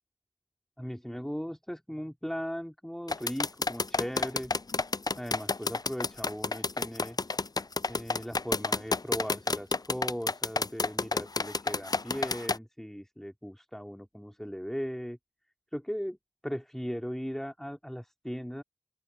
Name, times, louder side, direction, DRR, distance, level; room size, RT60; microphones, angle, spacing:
voice 1, 0.8-4.5 5.2-7.4 7.9-15.2 15.7-16.2 16.4-18.6, equal, 5° left, 3.2 m, -38 dB
sound 1, 3.1-12.6, left 3 dB, 40° left, 0.4 m, -29 dB
open air
wide cardioid pair, 45°, 10 cm